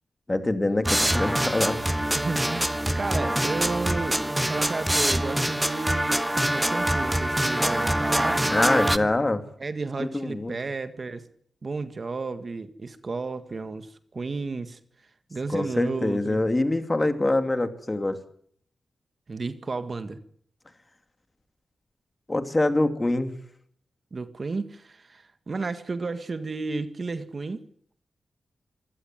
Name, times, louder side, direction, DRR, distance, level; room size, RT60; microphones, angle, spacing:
voice 1, 0.3-1.8 8.5-9.4 10.0-10.5 15.5-18.2 22.3-23.3, left 2 dB, 20° left, 2.7 m, -24 dB
sound 1, 0.8-9.0, right 1 dB, 5° right, 1.1 m, -25 dB
voice 2, 2.1-8.4 8.9-9.1 9.6-11.3 11.6-14.8 15.3-16.4 19.3-20.2 24.1-27.7, right 3 dB, 40° right, 1.8 m, -32 dB
26.0 x 16.5 x 9.2 m
wide cardioid pair, 110°, 0 cm